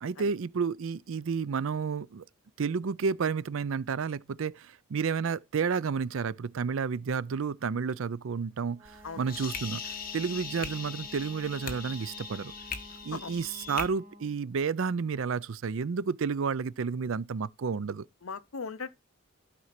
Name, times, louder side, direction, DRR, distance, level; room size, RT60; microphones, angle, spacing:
voice 1, 0.0-2.2 2.6-12.5 13.0-18.1, right 5 dB, 65° right, 0.4 m, -31 dB
Wind instrument woodwind instrument, 8.7-14.4, equal, 20° right, 1.9 m, -51 dB
sound 1, 8.8-13.9, left 6 dB, 40° left, 1.2 m, -40 dB
voice 2, 18.2-18.9, left 5 dB, 70° left, 0.7 m, -38 dB
12.5 x 4.3 x 5.8 m
head